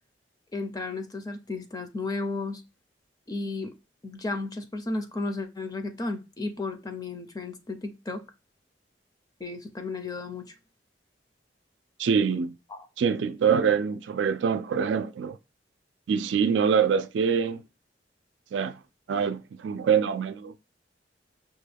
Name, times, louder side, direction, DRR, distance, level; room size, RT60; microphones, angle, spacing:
voice 1, 0.5-2.6 3.3-3.7 4.0-8.2 9.4-10.5 12.7-12.9, left 3 dB, 20° left, 0.5 m, -33 dB
voice 2, 12.0-12.6 13.0-15.4 16.1-17.6 18.5-18.8 19.1-20.5, right 6 dB, 90° right, 0.4 m, -25 dB
5.4 x 2.2 x 3.3 m
head